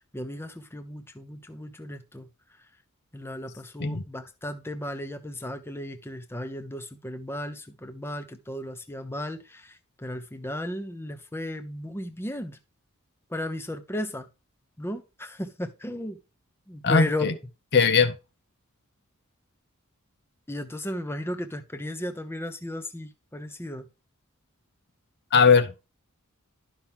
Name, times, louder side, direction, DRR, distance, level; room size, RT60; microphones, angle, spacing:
voice 1, 0.0-2.3 3.1-12.6 13.3-14.3 14.8-16.2 16.7-17.4 20.5-23.9, left 1 dB, 10° left, 0.9 m, -35 dB
voice 2, 16.8-17.3 17.7-18.2 25.3-25.8, left 5 dB, 50° left, 0.8 m, -20 dB
11.5 x 5.9 x 3.6 m
head